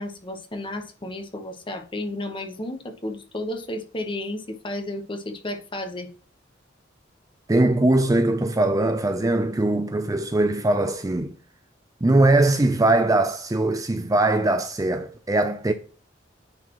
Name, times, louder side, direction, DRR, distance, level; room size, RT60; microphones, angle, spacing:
voice 1, 0.0-6.1, left 1 dB, 25° left, 1.1 m, -32 dB
voice 2, 7.5-11.3 12.0-15.7, right 2 dB, 20° right, 0.5 m, -21 dB
9.6 x 4.3 x 3.0 m
head